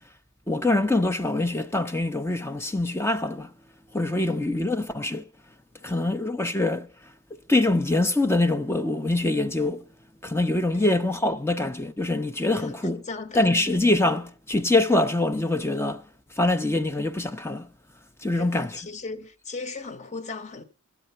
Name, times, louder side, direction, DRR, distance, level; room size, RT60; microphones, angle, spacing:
voice 1, 0.5-3.5 3.9-5.2 5.8-6.9 7.3-9.8 10.2-13.0 13.3-17.7 18.2-18.8, left 2 dB, 10° left, 0.5 m, -24 dB
voice 2, 5.8-6.2 10.7-11.0 12.5-13.5 18.3-20.6, left 3 dB, 30° left, 0.9 m, -38 dB
13.0 x 8.0 x 5.4 m
head